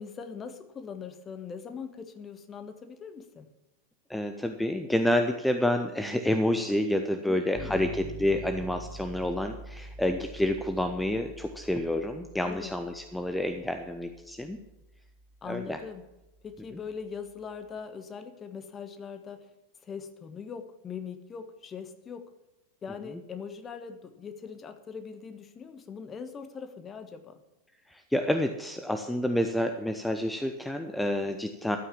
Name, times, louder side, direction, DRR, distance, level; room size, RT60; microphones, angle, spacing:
voice 1, 0.0-3.5 7.3-8.1 12.4-12.7 15.4-16.0 16.4-19.5 19.8-22.3 22.8-27.4, left 6 dB, 20° left, 8 dB, 1.3 m, -41 dB
voice 2, 4.1-14.6 15.4-15.8 16.7-16.8 27.9-31.8, left 1 dB, 5° left, 7 dB, 0.8 m, -29 dB
sound 1, 7.6-17.4, equal, 35° right, 2.4 m, -46 dB
13.0 x 8.5 x 7.3 m, 0.98 s
figure-of-eight pair, 90°, 0 cm